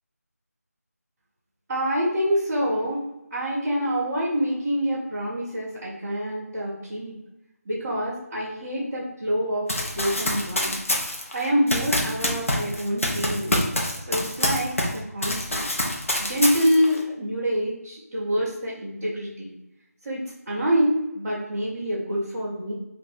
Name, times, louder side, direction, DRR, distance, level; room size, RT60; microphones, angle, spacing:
voice 1, 1.7-3.0 3.3-7.2 7.6-9.7 9.9-10.7 11.3-13.6 14.0-15.7 16.2-19.5 20.0-22.7, equal, 5° right, -12 dB, 0.4 m, -26 dB
Run, 9.7-15.0 15.2-17.0, left 1 dB, 55° left, 0.8 m, -26 dB
3.3 x 2.5 x 3.9 m, 0.93 s
figure-of-eight pair, 165°, 9 cm